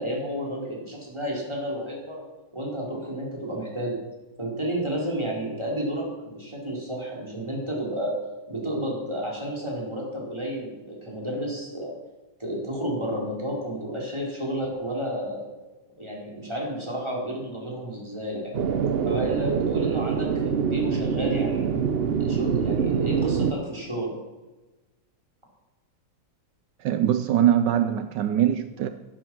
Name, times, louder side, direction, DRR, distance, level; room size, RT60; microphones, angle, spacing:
voice 1, 0.0-2.2 2.5-4.0 4.4-8.1 8.5-11.9 12.4-15.5 16.0-18.5 19.0-21.7 22.2-24.1, right 1 dB, 15° right, -3 dB, 4.3 m, -31 dB
sound 1, 18.5-23.5, right 7 dB, 55° right, 0.6 m, -25 dB
voice 2, 26.8-28.9, right 10 dB, 80° right, 10 dB, 1.3 m, -22 dB
12.5 x 11.5 x 6.2 m, 1.1 s
omnidirectional pair, 1.9 m